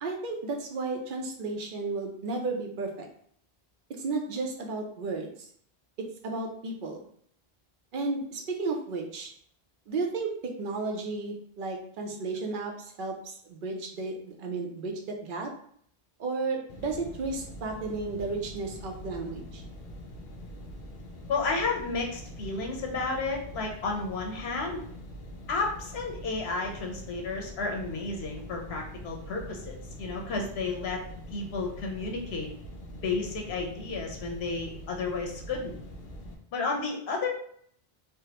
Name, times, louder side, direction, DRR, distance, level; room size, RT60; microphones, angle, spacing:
voice 1, 0.0-3.1 3.9-5.5 6.0-7.0 7.9-9.3 9.9-15.5 16.2-19.6, right 3 dB, 60° right, 2 dB, 0.7 m, -33 dB
sound 1, 16.7-36.4, equal, 60° left, 0.7 m, -44 dB
voice 2, 21.3-24.8 25.5-31.0 31.3-32.5 33.0-35.7 36.5-37.3, left 3 dB, 80° left, 1 dB, 1.0 m, -32 dB
3.4 x 2.1 x 2.8 m, 0.62 s
omnidirectional pair, 1.0 m